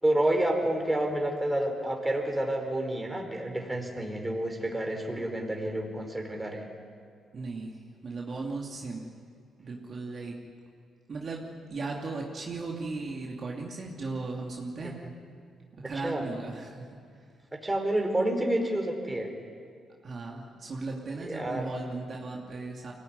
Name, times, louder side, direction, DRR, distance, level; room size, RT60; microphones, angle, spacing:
voice 1, 0.0-6.6 14.8-15.1 16.0-16.2 17.5-19.3 21.2-21.7, right 1 dB, 10° right, 2 dB, 4.5 m, -29 dB
voice 2, 7.3-9.0 9.6-10.4 11.1-11.4 11.7-14.9 15.8-16.9 20.0-22.9, right 3 dB, 45° right, -2 dB, 2.8 m, -36 dB
24.5 x 18.0 x 9.7 m, 2.2 s
cardioid pair, 85°, 0 cm